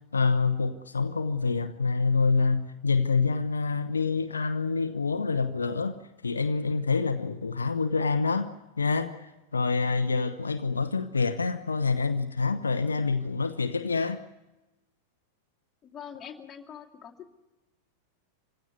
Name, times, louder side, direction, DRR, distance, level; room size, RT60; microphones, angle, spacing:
voice 1, 0.1-8.5 8.8-14.2, left 4 dB, 75° left, 0.9 m, -27 dB
voice 2, 15.8-17.3, left 8 dB, 20° left, 2.5 m, -44 dB
26.0 x 16.5 x 9.6 m
figure-of-eight pair, 90°, 0 cm